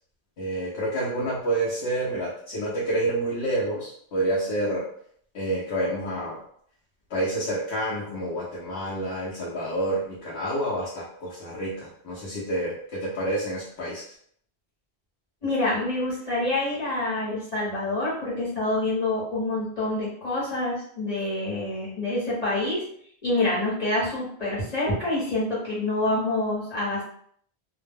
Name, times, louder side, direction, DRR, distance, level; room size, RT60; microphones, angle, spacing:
voice 1, 0.4-4.9 5.3-6.4 7.1-14.0, right 1 dB, 75° left, -6 dB, 0.8 m, -28 dB
voice 2, 15.4-22.8 23.2-27.0, left 2 dB, 40° left, -9 dB, 0.9 m, -27 dB
2.2 x 2.0 x 3.4 m, 0.64 s
omnidirectional pair, 1.1 m